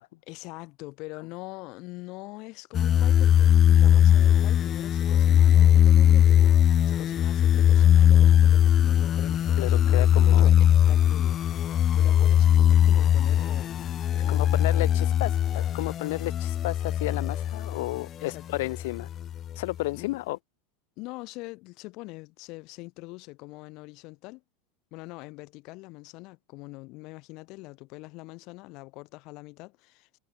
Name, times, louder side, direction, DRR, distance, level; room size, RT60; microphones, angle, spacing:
voice 1, 0.3-15.2 18.2-18.6 19.9-20.2 21.0-24.4 24.9-30.2, left 24 dB, 50° left, 3.3 m, -43 dB
sound 1, 2.7-18.0 18.5-19.6, left 10 dB, 30° left, 0.4 m, -20 dB
voice 2, 9.6-10.5 14.1-19.1 19.6-20.4, left 19 dB, 75° left, 1.2 m, -32 dB
supercardioid pair, 145°, 0 cm